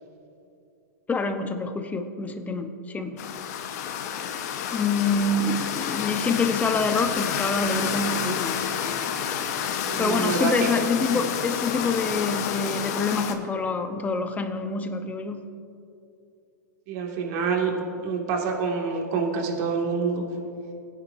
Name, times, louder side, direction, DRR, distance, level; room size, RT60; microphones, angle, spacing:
voice 1, 1.1-3.2 4.7-8.6 10.0-15.4, left 3 dB, 15° left, 7 dB, 0.9 m, -26 dB
sound 1, 3.2-13.3, left 8 dB, 55° left, 1.1 m, -29 dB
voice 2, 9.8-10.7 11.1-11.2 16.9-17.7 18.0-20.2, right 5 dB, 50° right, 0 dB, 2.1 m, -27 dB
21.0 x 9.9 x 2.6 m, 2.6 s
hypercardioid pair, 120°, 10 cm